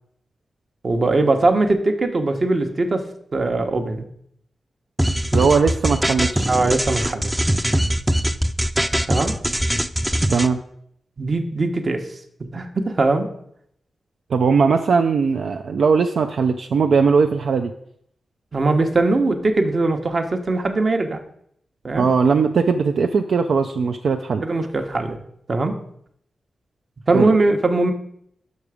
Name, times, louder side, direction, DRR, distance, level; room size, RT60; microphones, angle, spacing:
voice 1, 0.8-3.1 3.3-4.0 6.5-7.3 9.1-9.4 11.2-12.1 12.5-13.3 18.5-21.2 21.8-22.1 24.4-25.2 25.5-25.7 27.1-27.9, right 2 dB, 50° right, 5 dB, 0.9 m, -20 dB
sound 1, 5.0-10.5, equal, 10° right, 0.4 m, -21 dB
voice 2, 5.3-6.5 10.3-10.6 14.3-17.7 22.0-24.4 27.1-27.3, right 5 dB, 75° right, 5 dB, 0.4 m, -19 dB
5.9 x 5.3 x 4.8 m, 0.70 s
cardioid pair, 55°, 0 cm